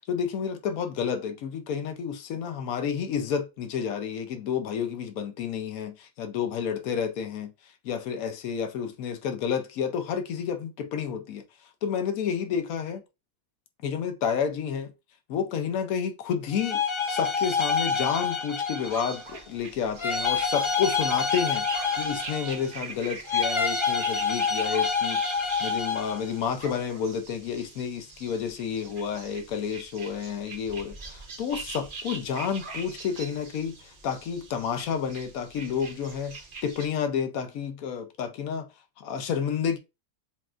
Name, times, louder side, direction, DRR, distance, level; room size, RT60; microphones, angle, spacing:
voice 1, 0.1-13.0 13.8-14.9 15.3-16.8 17.1-38.7 39.0-39.8, left 7 dB, 80° left, 1.1 m, -30 dB
sound 1, 16.5-19.3 20.0-22.8 23.3-26.2, left 5 dB, 40° left, 0.4 m, -27 dB
sound 2, 18.8-36.9, right 4 dB, 40° right, 1.0 m, -42 dB
7.1 x 2.4 x 2.4 m
omnidirectional pair, 1.5 m